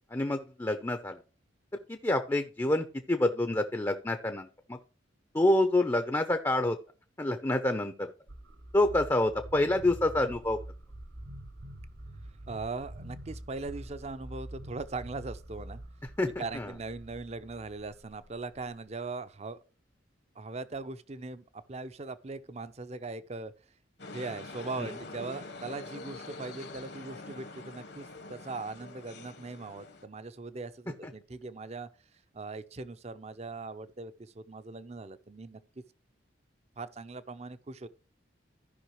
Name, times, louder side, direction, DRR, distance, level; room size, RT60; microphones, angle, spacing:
voice 1, 0.1-1.2 1.9-4.8 5.3-6.8 7.2-8.1 8.7-10.6 16.2-16.7 24.8-24.9, left 1 dB, 15° left, 0.6 m, -27 dB
sound 1, 8.3-19.2, right 1 dB, 60° right, 1.0 m, -46 dB
voice 2, 12.5-15.8 16.4-19.6 20.4-23.5 24.1-31.9 32.3-35.6 36.8-37.9, right 3 dB, 35° right, 0.6 m, -40 dB
sound 2, 24.0-30.1, left 2 dB, 60° left, 1.1 m, -45 dB
15.0 x 5.5 x 3.1 m
head